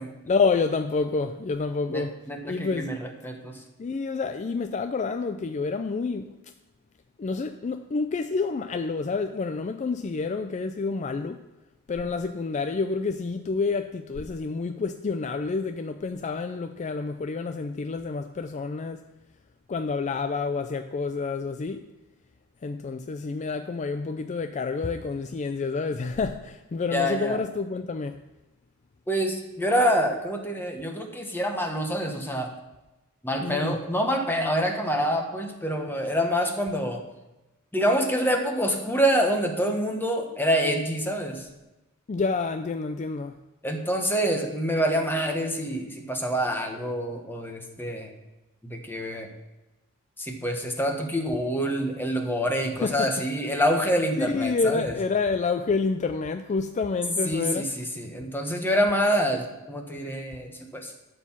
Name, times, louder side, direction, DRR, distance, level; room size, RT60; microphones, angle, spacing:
voice 1, 0.3-3.0 3.8-6.5 7.2-11.4 11.9-19.1 19.7-21.9 22.6-28.2 33.4-33.8 42.1-43.4 52.8-53.2 54.2-57.7, left 4 dB, 35° left, 0.4 m, -28 dB
voice 2, 1.9-3.6 26.9-27.4 29.1-32.5 33.2-37.0 37.7-41.5 43.6-48.1 48.6-49.3 50.2-54.9 57.2-60.9, equal, 10° left, 1.2 m, -26 dB
12.0 x 4.6 x 7.2 m
head